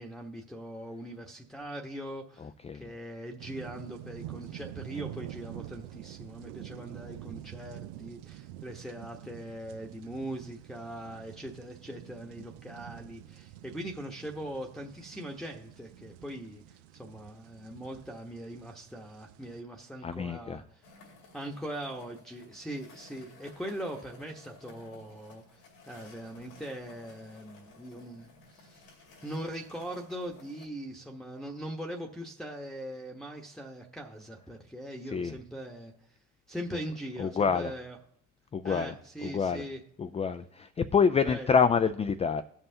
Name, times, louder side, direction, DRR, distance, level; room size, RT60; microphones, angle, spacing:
voice 1, 0.0-2.5 2.7-20.8 21.3-28.9 29.2-36.2 36.5-38.0 38.6-39.8 41.2-41.6, right 1 dB, ahead, -1 dB, 1.0 m, -41 dB
voice 2, 2.4-2.9 20.0-20.6 35.1-35.4 37.2-37.7 38.5-38.9 39.2-39.7 40.0-42.4, left 6 dB, 20° left, 10 dB, 0.3 m, -27 dB
sound 1, 3.4-19.6, right 14 dB, 90° right, 0.5 m, -47 dB
sound 2, 20.8-30.7, left 3 dB, 90° left, 2.3 m, -55 dB
16.5 x 5.6 x 2.8 m, 0.70 s
supercardioid pair, 75°, 32 cm